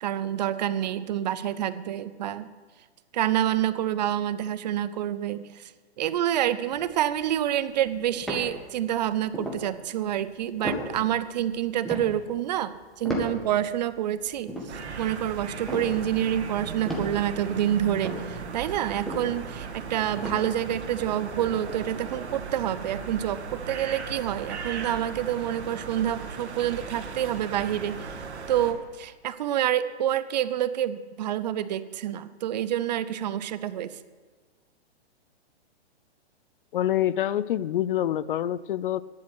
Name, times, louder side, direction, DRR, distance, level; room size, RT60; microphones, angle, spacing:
voice 1, 0.0-2.5 3.1-5.7 6.0-14.5 15.0-28.2 28.5-34.0, right 11 dB, 40° right, 15 dB, 0.5 m, -28 dB
sound 1, 6.7-9.0 9.3-9.6 10.1-10.2 10.4-13.8 14.2-16.5 16.8-20.8 21.3-21.4, left 1 dB, ahead, 1.7 m, -35 dB
sound 2, 14.7-28.7, right 5 dB, 85° right, 2.0 m, -37 dB
voice 2, 36.7-39.0, left 12 dB, 55° left, 18 dB, 0.4 m, -26 dB
10.5 x 8.9 x 7.9 m, 1.4 s
hypercardioid pair, 150°, 33 cm